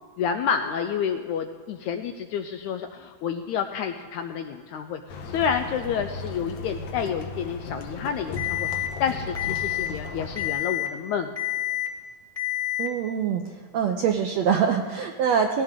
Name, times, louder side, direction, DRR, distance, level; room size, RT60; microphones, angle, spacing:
voice 1, 0.2-5.0 5.3-11.3, left 7 dB, 80° left, 6 dB, 1.7 m, -29 dB
sound 1, 5.1-10.5, left 3 dB, 65° left, 1.9 m, -36 dB
Alarm, 8.4-8.9 9.4-9.9 10.4-10.9 11.4-11.9 12.4-12.9, left 15 dB, 30° left, 0.6 m, -28 dB
voice 2, 12.8-13.4 13.7-15.6, right 7 dB, 80° right, 3 dB, 1.5 m, -24 dB
18.5 x 16.0 x 3.7 m, 1.4 s
omnidirectional pair, 3.9 m